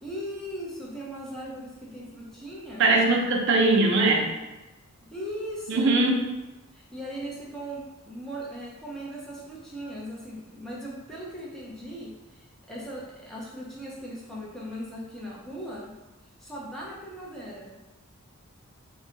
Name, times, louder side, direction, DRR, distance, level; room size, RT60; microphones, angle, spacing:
voice 1, 0.0-2.9 5.1-6.1 6.7-15.9 16.4-17.8, equal, ahead, -6 dB, 0.5 m, -38 dB
voice 2, 2.8-4.3 5.7-6.2, right 2 dB, 55° right, 1 dB, 0.5 m, -21 dB
2.6 x 2.1 x 3.8 m, 1.1 s
head